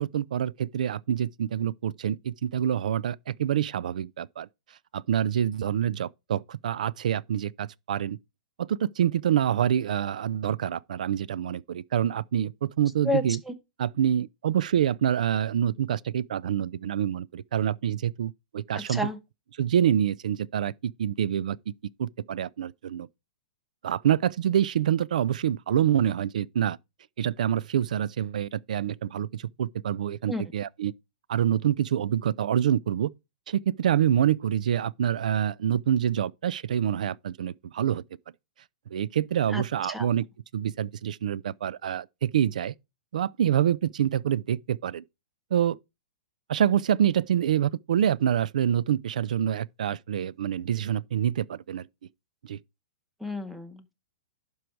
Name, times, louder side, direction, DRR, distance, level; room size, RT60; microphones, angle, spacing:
voice 1, 0.0-4.5 4.9-8.2 8.6-13.4 13.8-19.1 19.6-21.6 22.0-23.1 23.8-26.8 27.2-30.9 31.3-33.1 33.5-38.0 38.9-40.2 40.5-42.7 43.1-45.0 45.5-45.8 46.5-51.9 52.4-52.6, right 10 dB, 65° right, 0.4 m, -26 dB
voice 2, 13.0-13.5 18.7-19.2 30.3-30.4 39.5-39.6 39.9-40.1 53.2-53.9, left 1 dB, ahead, 0.5 m, -30 dB
11.5 x 4.7 x 4.6 m
hypercardioid pair, 175°, 4 cm